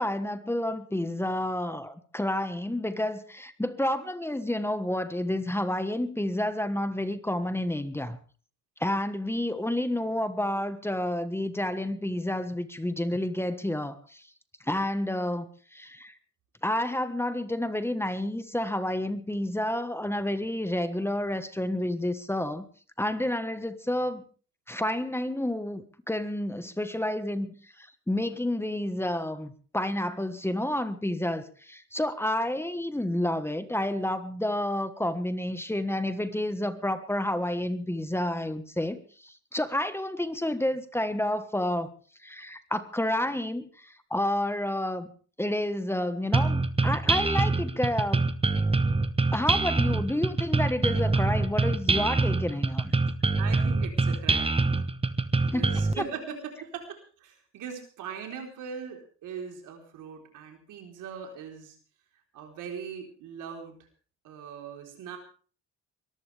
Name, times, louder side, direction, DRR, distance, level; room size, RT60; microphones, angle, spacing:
voice 1, 0.0-8.2 8.8-14.2 14.6-16.1 16.6-22.6 23.0-24.2 24.7-41.9 42.2-45.1 45.4-48.3 49.3-52.9 55.5-56.0, left 1 dB, 10° left, 1.4 m, -30 dB
sound 1, 46.3-55.9, right 3 dB, 20° right, 1.2 m, -25 dB
voice 2, 53.4-54.6 55.4-61.8 62.3-63.8 64.2-65.2, right 7 dB, 85° right, 4.1 m, -40 dB
23.0 x 14.5 x 3.5 m
cardioid pair, 90°, 30 cm